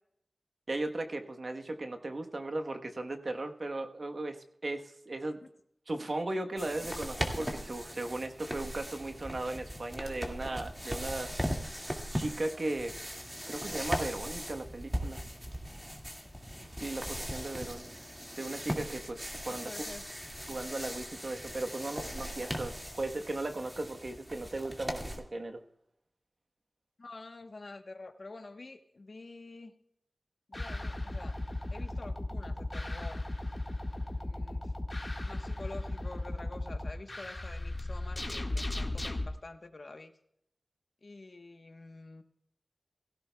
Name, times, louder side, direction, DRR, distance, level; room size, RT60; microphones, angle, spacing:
voice 1, 0.7-5.4 5.9-11.3 12.1-12.9 13.5-15.2 16.8-17.9 18.4-19.7 20.5-25.6, right 2 dB, 60° right, 5 dB, 1.1 m, -37 dB
sound 1, 6.6-25.2, equal, 10° right, 2.1 m, -39 dB
voice 2, 19.5-20.0 22.8-22.9 27.0-29.7 30.5-31.4 31.7-33.2 34.1-34.7 35.2-40.1 41.0-42.2, left 3 dB, 60° left, 7 dB, 1.1 m, -48 dB
sound 2, 30.5-39.3, left 2 dB, 35° left, 1.7 m, -36 dB
17.5 x 15.5 x 2.3 m, 0.74 s
wide cardioid pair, 55°, 0 cm